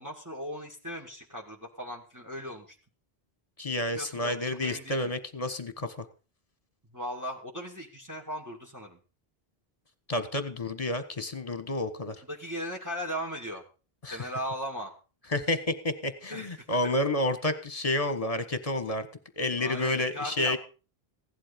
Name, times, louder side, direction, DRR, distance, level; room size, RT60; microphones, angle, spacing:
voice 1, 0.0-2.7 3.9-5.1 6.9-9.0 12.3-13.6 14.1-14.9 16.3-16.5 16.8-17.0 19.6-20.6, equal, 15° right, -1 dB, 2.3 m, -37 dB
voice 2, 3.6-5.9 10.1-12.2 14.0-14.3 15.3-19.1 19.4-20.6, left 1 dB, 35° left, 11 dB, 1.5 m, -30 dB
16.5 x 11.0 x 5.2 m, 0.36 s
omnidirectional pair, 1.0 m